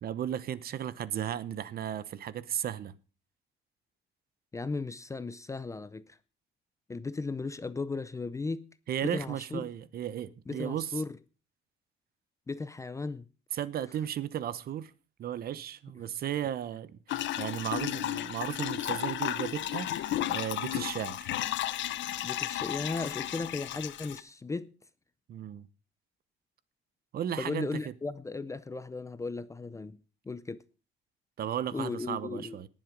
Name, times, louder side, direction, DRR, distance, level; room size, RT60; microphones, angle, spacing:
voice 1, 0.0-2.9 8.9-10.9 13.5-14.9 15.2-19.9 20.3-21.3 25.3-25.7 27.1-27.7 31.4-32.7, right 10 dB, 45° right, 0.8 m, -35 dB
voice 2, 4.5-6.2 6.9-8.7 9.0-9.6 10.5-11.2 12.5-13.2 17.1-17.2 22.2-24.7 27.4-30.0 30.3-30.6 31.7-32.6, left 3 dB, 15° left, 0.5 m, -36 dB
sound 1, 17.1-24.2, left 13 dB, 65° left, 0.9 m, -33 dB
18.5 x 7.5 x 5.1 m
cardioid pair, 165°, 21 cm